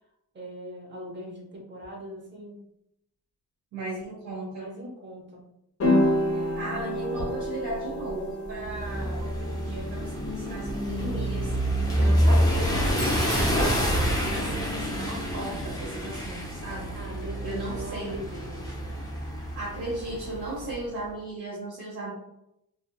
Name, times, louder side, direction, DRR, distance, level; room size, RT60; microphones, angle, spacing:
voice 1, 0.3-2.6 4.5-5.5 16.9-19.0, equal, 30° right, -1 dB, 0.7 m, -40 dB
voice 2, 3.7-4.7 6.3-11.5 12.0-16.9 17.4-18.2 19.5-22.1, right 1 dB, 75° right, -6 dB, 1.0 m, -36 dB
sound 1, 5.8-14.2, left 1 dB, 35° left, 0.9 m, -31 dB
sound 2, 8.6-20.8, equal, 10° left, 0.5 m, -27 dB
Doorbell, 12.9-14.8, equal, 50° right, 1.3 m, -42 dB
2.7 x 2.6 x 2.2 m, 0.82 s
wide cardioid pair, 130°, 38 cm